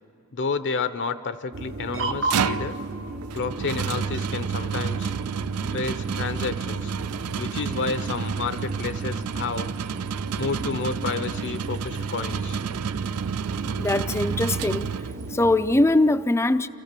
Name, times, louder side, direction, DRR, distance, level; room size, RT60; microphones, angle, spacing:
voice 1, 0.3-2.8 3.3-5.1 5.7-6.9 7.4-9.7 10.4-12.6, left 4 dB, 55° left, 11 dB, 0.7 m, -30 dB
sound 1, 1.5-15.8, right 2 dB, 60° right, 1.0 m, -35 dB
sound 2, 2.0-15.4, right 7 dB, 85° right, 0.5 m, -30 dB
voice 2, 13.8-14.9 15.3-16.7, left 2 dB, 10° left, 12 dB, 0.4 m, -21 dB
27.0 x 15.5 x 6.8 m, 2.9 s
head